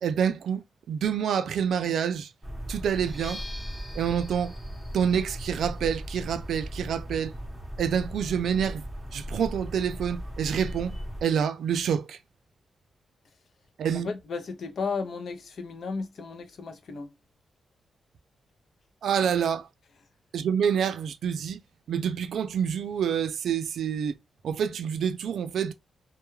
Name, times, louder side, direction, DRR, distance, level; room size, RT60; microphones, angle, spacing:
voice 1, 0.0-2.3 2.7-3.4 3.9-4.5 4.9-7.3 7.8-8.8 9.1-12.2 13.8-14.1 19.0-19.7 20.3-21.6 21.9-24.2 24.4-25.7, right 8 dB, 75° right, 0.3 m, -27 dB
sound 1, 2.4-11.2, equal, 5° right, 0.8 m, -38 dB
sound 2, 3.0-10.7, left 1 dB, 25° left, 1.0 m, -49 dB
voice 2, 13.9-17.1, left 4 dB, 55° left, 0.5 m, -34 dB
2.2 x 2.2 x 3.0 m
wide cardioid pair, 155°, 0 cm